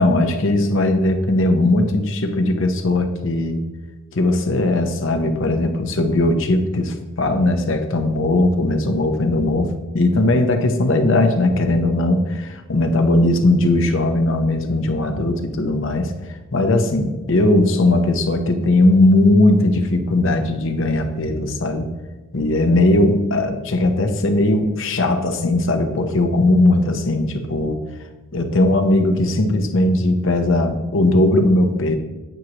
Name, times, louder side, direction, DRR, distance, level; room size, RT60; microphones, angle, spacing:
voice 1, 0.0-3.6 4.1-16.1 16.5-21.9 22.3-27.8 28.3-32.0, left 2 dB, 65° left, 6 dB, 0.8 m, -18 dB
9.2 x 7.8 x 3.0 m, 1.2 s
head